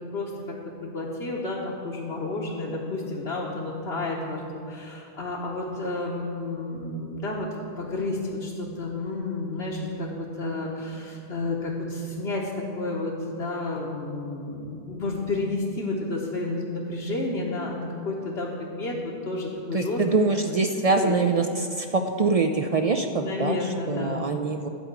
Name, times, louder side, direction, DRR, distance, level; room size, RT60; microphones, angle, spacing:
voice 1, 0.0-4.4 4.7-7.5 7.8-20.0 20.9-21.2 23.1-24.3, left 2 dB, 75° left, -4 dB, 1.3 m, -31 dB
voice 2, 19.7-24.7, right 3 dB, 55° right, 6 dB, 0.4 m, -24 dB
11.0 x 4.8 x 8.1 m, 2.5 s
omnidirectional pair, 1.1 m